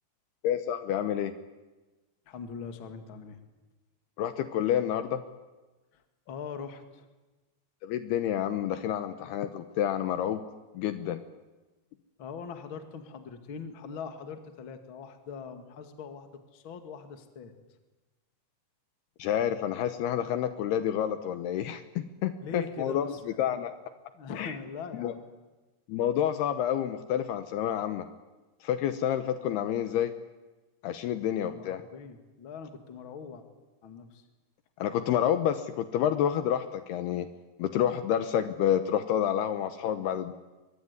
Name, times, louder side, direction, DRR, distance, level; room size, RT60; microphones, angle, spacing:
voice 1, 0.4-1.3 4.2-5.2 7.8-10.4 10.7-11.2 19.2-23.1 23.4-23.7 24.4-24.5 24.9-25.1 25.9-28.1 28.6-30.1 30.8-31.8 34.8-37.3 37.6-40.3, left 10 dB, 70° left, 10 dB, 2.8 m, -29 dB
voice 2, 2.3-3.4 5.9-7.1 12.2-17.5 22.4-23.6 24.1-25.2 31.4-33.4 33.8-34.3, left 5 dB, 40° left, 7 dB, 2.0 m, -42 dB
23.5 x 23.5 x 9.7 m, 1.2 s
omnidirectional pair, 5.2 m